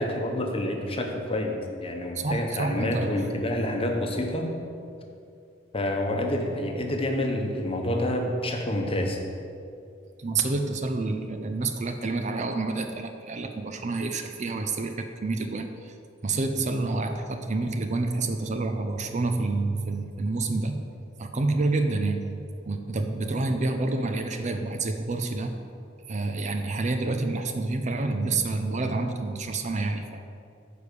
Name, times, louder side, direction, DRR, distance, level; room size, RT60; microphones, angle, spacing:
voice 1, 0.0-4.5 5.7-9.2, left 1 dB, 30° left, 2 dB, 1.0 m, -28 dB
voice 2, 2.1-3.3 10.2-15.9 16.2-20.9 21.2-25.5 26.1-30.2, right 3 dB, 35° right, 6 dB, 0.5 m, -28 dB
9.7 x 5.0 x 6.8 m, 2.5 s
head